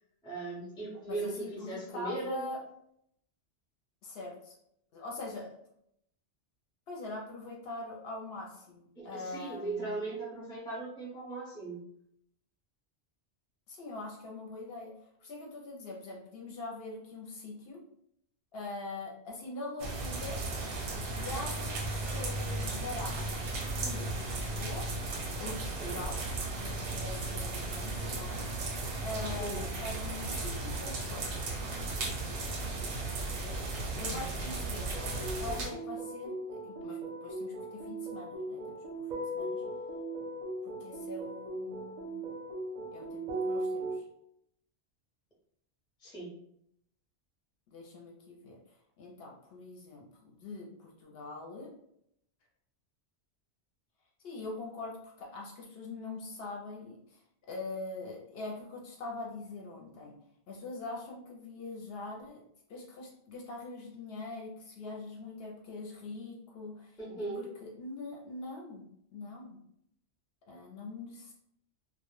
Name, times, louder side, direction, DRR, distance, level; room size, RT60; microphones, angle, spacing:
voice 1, 0.2-2.4 9.0-11.8 25.8-26.0 29.4-29.7 46.0-46.3 67.0-67.4, right 3 dB, 5° left, -3 dB, 0.4 m, -38 dB
voice 2, 1.1-2.6 4.0-4.5 4.9-5.6 6.9-10.1 13.7-14.9 15.2-17.8 18.5-20.4 21.1-24.9 25.4-28.4 29.0-31.2 31.5-31.9 33.1-33.6 34.0-35.0 35.4-38.6 39.0-39.1 39.3-39.6 40.6-42.3 42.9-44.0 47.7-48.6 49.0-51.7 54.2-57.2 57.5-60.1 60.5-62.4 62.7-68.9 69.1-69.6 70.5-71.3, left 2 dB, 65° left, -1 dB, 0.7 m, -43 dB
sound 1, 19.8-35.7, right 2 dB, 85° right, 0.9 m, -35 dB
sound 2, 34.9-44.0, right 1 dB, 50° right, 0.6 m, -38 dB
2.1 x 2.1 x 2.9 m, 0.74 s
omnidirectional pair, 1.2 m